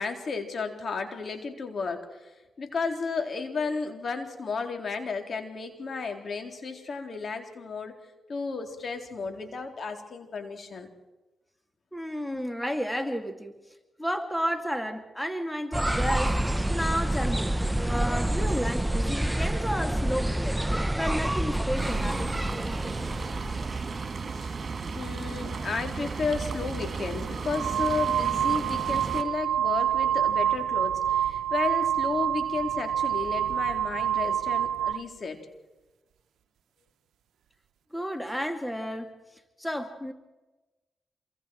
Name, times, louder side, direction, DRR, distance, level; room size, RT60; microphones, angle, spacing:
voice 1, 0.0-2.3 2.6-7.9 8.3-10.9 24.3-24.5 24.8-35.5, left 4 dB, 60° left, 4 dB, 3.8 m, -33 dB
voice 2, 11.9-13.5 14.0-16.4 16.7-17.6 17.8-20.6 21.0-22.3 37.9-39.1 39.6-40.1, equal, 5° left, 6 dB, 2.5 m, -32 dB
sound 1, 15.7-24.1, right 1 dB, 10° right, 0.8 m, -28 dB
sound 2, 21.8-29.2, right 4 dB, 55° right, 2.7 m, -34 dB
sound 3, 26.4-26.5 27.3-35.1, right 10 dB, 90° right, 0.8 m, -27 dB
27.0 x 24.0 x 4.7 m, 1.1 s
cardioid pair, 55°, 0 cm